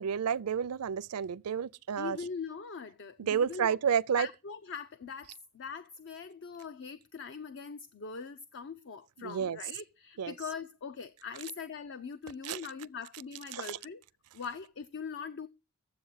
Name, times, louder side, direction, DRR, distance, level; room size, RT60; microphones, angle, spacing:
voice 1, 0.0-2.2 3.2-4.3 9.2-9.6 10.2-10.3 12.4-12.6 13.5-13.8, right 7 dB, 75° right, 0.5 m, -30 dB
voice 2, 2.0-3.8 4.2-14.0 14.3-15.5, left 5 dB, 55° left, 0.6 m, -42 dB
10.5 x 7.6 x 5.7 m
head